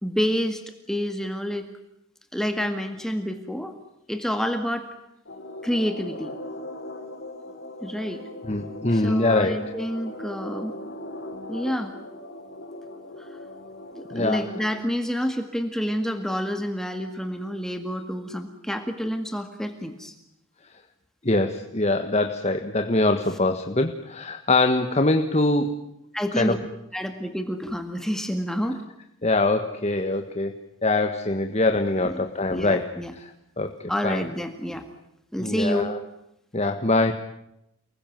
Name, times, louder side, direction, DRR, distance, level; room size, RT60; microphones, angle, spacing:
voice 1, 0.0-0.6 0.9-1.7 2.3-3.7 4.1-4.9 5.6-6.3 7.8-8.2 8.9-10.7 11.5-11.9 13.2-13.3 14.0-20.1 26.1-26.6 26.9-28.8 32.0-32.2 32.5-33.1 33.9-34.8 35.3-35.9, equal, ahead, 6 dB, 1.9 m, -28 dB
sound 1, 5.3-14.8, left 1 dB, 55° left, 3.9 m, -39 dB
voice 2, 8.5-9.6 14.1-14.4 21.2-25.7 26.4-26.6 29.2-33.3 33.6-34.2 35.4-36.0 36.5-37.1, left 2 dB, 30° left, 6 dB, 1.6 m, -23 dB
30.0 x 21.0 x 9.2 m, 0.83 s
head